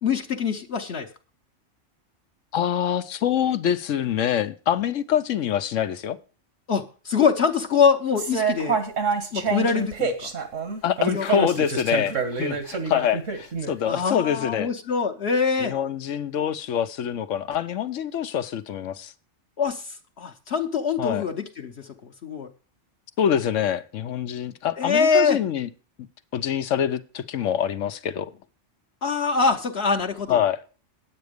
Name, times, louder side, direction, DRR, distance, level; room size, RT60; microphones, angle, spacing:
voice 1, 0.0-1.1 6.7-8.8 9.3-10.3 11.1-11.5 13.9-15.7 19.6-22.5 24.8-25.4 29.0-30.4, left 5 dB, 60° left, 1.1 m, -24 dB
voice 2, 2.5-6.2 10.8-14.7 15.6-19.1 21.0-21.2 23.2-25.7 26.0-26.1 26.3-28.3 30.3-30.6, left 9 dB, 85° left, 1.1 m, -25 dB
sound 1, 8.2-13.7, right 5 dB, 85° right, 2.0 m, -27 dB
9.4 x 8.8 x 5.1 m
omnidirectional pair, 1.3 m